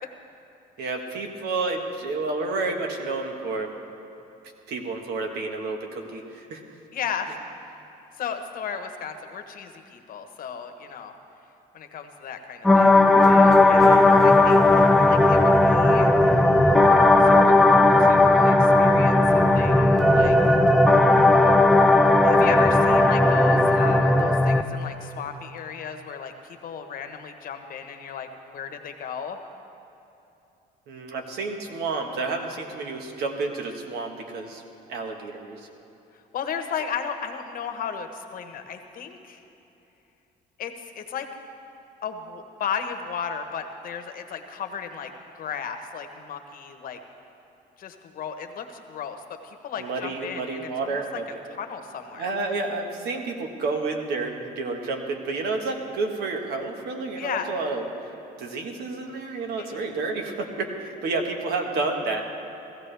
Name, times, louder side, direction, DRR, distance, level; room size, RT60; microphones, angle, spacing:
voice 1, 0.8-3.7 4.7-6.7 13.7-14.1 30.9-34.6 34.9-35.7 49.8-51.2 52.1-58.1 58.4-62.2, right 3 dB, 75° right, 3 dB, 1.5 m, -30 dB
voice 2, 6.9-7.3 8.2-11.1 11.7-14.7 15.0-16.1 17.2-20.5 22.2-29.4 36.3-39.4 40.6-41.3 42.0-47.0 47.8-51.2 51.6-52.3 57.2-57.5 59.6-59.9, left 7 dB, 55° left, 6 dB, 1.1 m, -35 dB
sound 1, 12.6-24.6, left 2 dB, ahead, 0.6 m, -16 dB
17.0 x 14.5 x 3.4 m, 2.9 s
cardioid pair, 110°, 17 cm